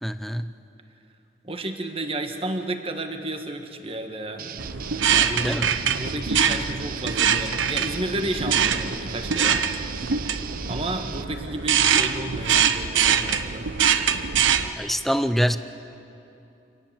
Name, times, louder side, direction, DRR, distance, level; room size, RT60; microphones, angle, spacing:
voice 1, 0.0-0.5 5.4-5.7 14.8-15.6, equal, ahead, 11 dB, 0.6 m, -24 dB
voice 2, 1.4-4.5 5.1-5.6 5.9-9.7 10.6-13.7, right 1 dB, 30° right, 6 dB, 1.5 m, -32 dB
sound 1, 4.4-11.3, right 7 dB, 50° right, 0.6 m, -37 dB
sound 2, 4.6-14.7, right 7 dB, 90° right, 0.9 m, -23 dB
27.0 x 18.0 x 7.4 m, 2.8 s
head